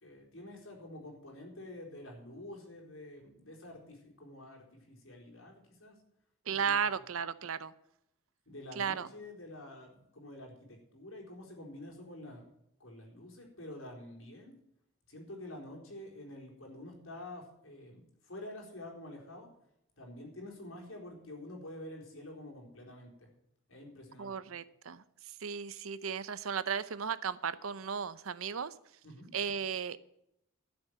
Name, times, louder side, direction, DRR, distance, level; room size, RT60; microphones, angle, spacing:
voice 1, 0.0-6.0 6.5-6.9 8.5-12.5 12.8-14.5 15.1-19.5 20.0-23.3 23.7-24.3 29.0-29.3, left 1 dB, 75° left, 0 dB, 4.0 m, -48 dB
voice 2, 6.5-7.7 8.7-9.1 24.2-28.7 29.3-30.0, right 6 dB, 80° right, 16 dB, 0.7 m, -35 dB
12.5 x 7.1 x 8.1 m, 0.81 s
head